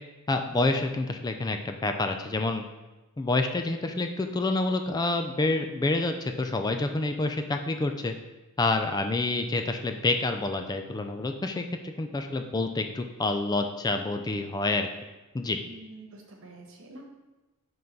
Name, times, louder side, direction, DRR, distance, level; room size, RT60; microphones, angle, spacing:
voice 1, 0.3-2.6 3.2-8.1 8.6-14.9 15.3-15.6, left 2 dB, 20° left, 6 dB, 0.3 m, -28 dB
voice 2, 15.6-17.0, right 2 dB, 65° right, 1 dB, 1.2 m, -47 dB
5.6 x 3.8 x 5.3 m, 1.1 s
head